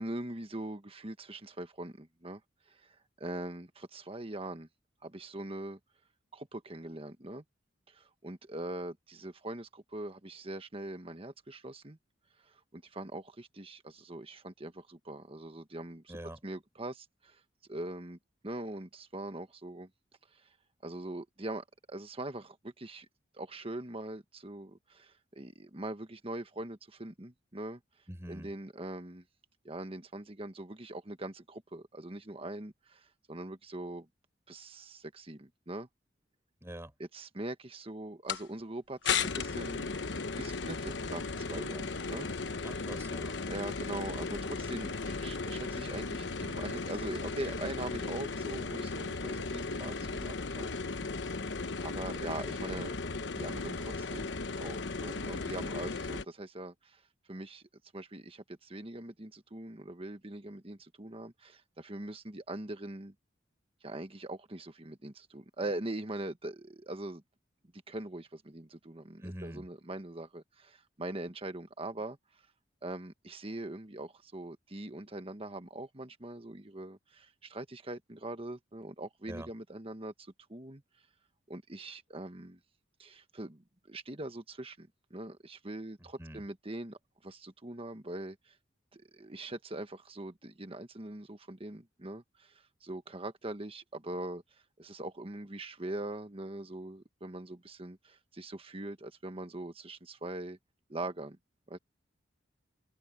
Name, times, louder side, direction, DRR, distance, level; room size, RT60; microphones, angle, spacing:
voice 1, 0.0-2.4 2.7-4.7 5.0-5.8 6.3-7.4 7.9-12.0 12.4-16.1 16.4-17.4 17.7-18.2 18.4-19.9 20.3-20.5 20.8-23.1 23.3-27.8 28.3-29.2 29.6-34.1 34.5-35.9 37.1-39.9 40.4-42.3 42.5-42.6 43.5-50.7 51.8-53.0 53.4-54.3 54.6-57.0 57.3-57.7 57.9-63.1 63.8-67.2 67.9-72.2 72.8-80.8 81.5-82.6 83.0-88.5 88.9-94.4 94.8-100.6 100.9-101.4 101.7-101.8, right 1 dB, 30° right, 1.5 m, -42 dB
voice 2, 16.1-16.4 28.1-28.5 36.6-36.9 42.6-43.4 69.2-69.7 79.3-79.5 86.0-86.4, equal, 15° right, 4.5 m, -45 dB
sound 1, 38.3-38.4 39.0-56.2, left 4 dB, 70° left, 1.1 m, -36 dB
open air
head